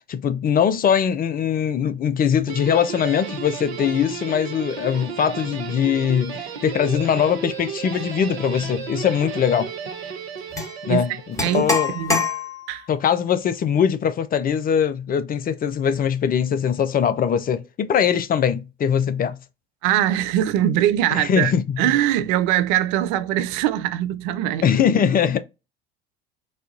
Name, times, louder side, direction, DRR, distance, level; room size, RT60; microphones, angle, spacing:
voice 1, 0.1-9.7 10.9-11.1 11.5-11.9 12.9-19.4 21.1-21.8 24.6-25.4, left 8 dB, 30° left, 0.5 m, -21 dB
Guitar, 2.5-11.8, right 7 dB, 75° right, 0.9 m, -33 dB
sound 1, 10.6-10.7 11.4-12.8, left 4 dB, 10° left, 1.3 m, -25 dB
voice 2, 11.9-12.3 12.7-12.9 19.8-24.6, right 12 dB, 60° right, 0.4 m, -22 dB
4.1 x 2.3 x 2.5 m
hypercardioid pair, 70°, 31 cm